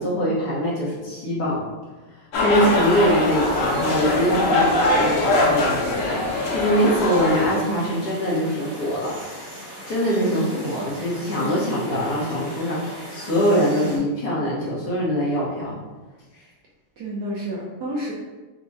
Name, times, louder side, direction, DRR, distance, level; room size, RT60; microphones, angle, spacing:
voice 1, 0.0-1.6 2.2-9.4 9.9-15.8 16.3-16.5, equal, 60° left, -6 dB, 1.3 m, -23 dB
sound 1, 2.3-7.5, left 2 dB, 90° left, 0.7 m, -22 dB
sound 2, 2.5-14.0, equal, 40° right, 1.2 m, -39 dB
voice 2, 10.5-11.0 17.0-18.1, right 1 dB, 70° right, -4 dB, 1.1 m, -31 dB
5.2 x 2.1 x 3.5 m, 1.2 s
omnidirectional pair, 2.2 m